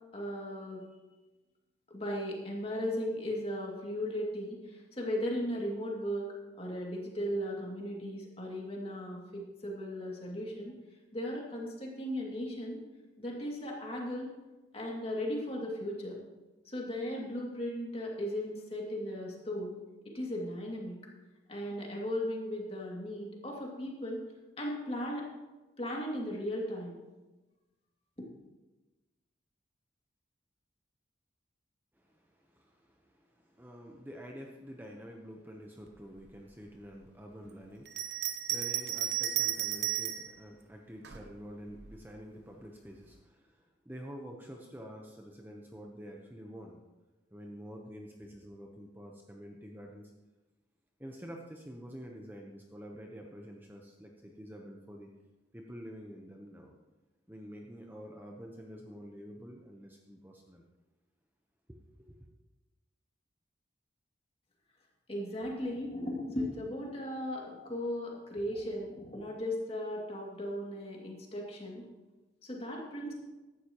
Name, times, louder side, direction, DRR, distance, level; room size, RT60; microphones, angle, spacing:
voice 1, 0.1-0.8 1.9-10.7 11.1-12.8 13.2-14.3 14.7-16.2 16.6-19.7 20.0-21.0 21.5-24.2 24.6-25.3 25.8-27.0 28.2-28.3 65.1-71.9 72.4-73.1, equal, 30° left, -2 dB, 2.4 m, -37 dB
voice 2, 31.9-46.8 47.3-50.1 51.0-55.1 55.5-56.7 57.3-60.6 61.7-62.2, equal, 10° right, 1 dB, 0.9 m, -48 dB
Bell, 37.9-40.3 41.0-42.0, right 11 dB, 65° right, 0.9 m, -33 dB
15.0 x 11.5 x 3.0 m, 1.1 s
head